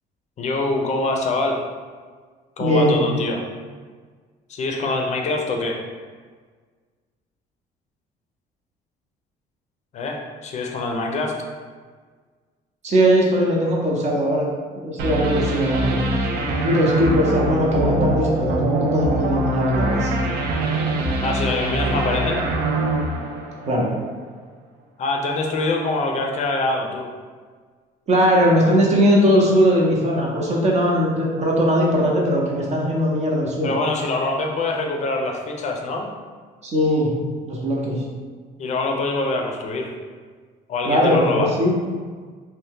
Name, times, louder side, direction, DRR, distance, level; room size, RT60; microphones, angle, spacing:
voice 1, 0.4-1.6 2.6-3.4 4.5-5.8 9.9-11.5 21.2-22.5 25.0-27.1 33.6-36.1 38.6-39.9 40.7-41.5, left 2 dB, 45° left, 2 dB, 0.5 m, -24 dB
voice 2, 2.6-2.9 12.8-14.5 14.8-20.1 23.7-23.9 28.1-33.7 36.6-37.1 37.4-38.0 40.9-41.7, equal, 40° right, -2 dB, 0.7 m, -19 dB
sound 1, 15.0-24.0, right 2 dB, 70° right, 0.4 m, -24 dB
2.7 x 2.2 x 3.4 m, 1.6 s
cardioid pair, 110°, 17 cm